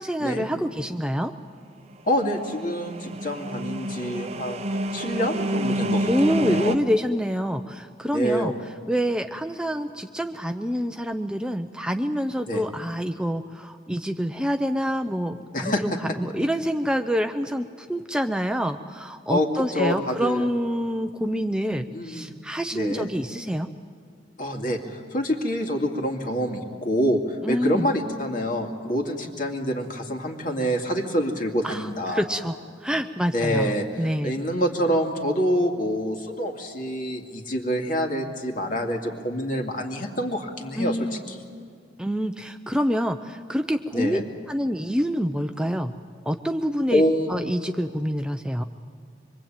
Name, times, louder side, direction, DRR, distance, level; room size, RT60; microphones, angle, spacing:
voice 1, 0.0-1.3 6.1-8.5 8.9-15.9 16.2-23.7 27.4-27.9 31.6-32.5 32.8-34.4 40.8-41.2 42.0-44.2 44.5-45.9 46.3-47.0 47.3-48.6, equal, 5° right, 6 dB, 0.6 m, -26 dB
voice 2, 2.1-4.6 4.9-6.8 8.1-8.6 12.5-12.6 15.5-16.0 19.3-20.4 21.9-22.3 22.7-23.1 24.4-27.2 27.5-32.2 33.3-41.4 43.9-44.2 46.9-47.3, equal, 50° left, 3 dB, 2.5 m, -26 dB
sound 1, 2.1-6.8, right 1 dB, 35° right, 0.8 m, -28 dB
25.0 x 23.0 x 8.9 m, 2.1 s
head